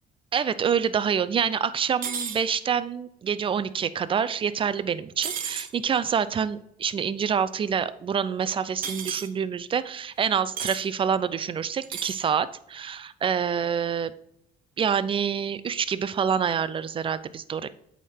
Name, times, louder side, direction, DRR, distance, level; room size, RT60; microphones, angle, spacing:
voice 1, 0.3-14.1 14.8-17.7, right 7 dB, 30° right, 15 dB, 0.4 m, -27 dB
sound 1, 2.0-2.4 5.2-5.7 8.8-9.3 10.6-10.8 11.8-12.2, right 7 dB, 55° right, 0.8 m, -32 dB
8.3 x 3.6 x 4.3 m, 0.76 s
cardioid pair, 110°, 17 cm